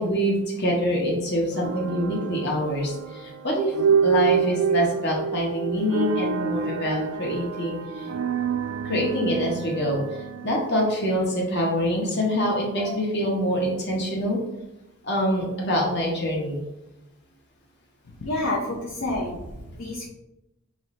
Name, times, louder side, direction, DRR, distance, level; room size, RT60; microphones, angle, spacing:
voice 1, 0.0-3.7 4.0-8.1 8.8-10.0 10.4-14.4 15.0-16.6, equal, 50° left, -2 dB, 1.2 m, -25 dB
sound 1, 1.5-11.6, right 6 dB, 75° right, 0.3 m, -28 dB
voice 2, 18.2-20.1, left 2 dB, 70° left, -3 dB, 0.7 m, -29 dB
5.5 x 2.8 x 3.1 m, 0.93 s
head